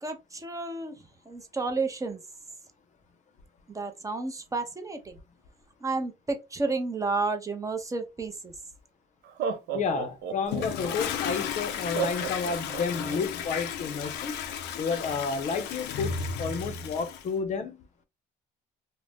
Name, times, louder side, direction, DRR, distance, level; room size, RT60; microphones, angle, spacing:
voice 1, 0.0-1.0 1.3-2.2 3.7-5.2 5.8-8.5, right 3 dB, 20° right, 0.6 m, -31 dB
Laughter, 8.5-8.6 9.2-11.0 11.9-13.2, right 7 dB, 75° right, 0.6 m, -32 dB
voice 2, 9.7-14.3 14.8-17.9, left 5 dB, 45° left, 0.6 m, -31 dB
Toilet flush, 10.5-17.3, left 7 dB, 90° left, 0.4 m, -34 dB
2.5 x 2.0 x 3.3 m
cardioid pair, 110°, 17 cm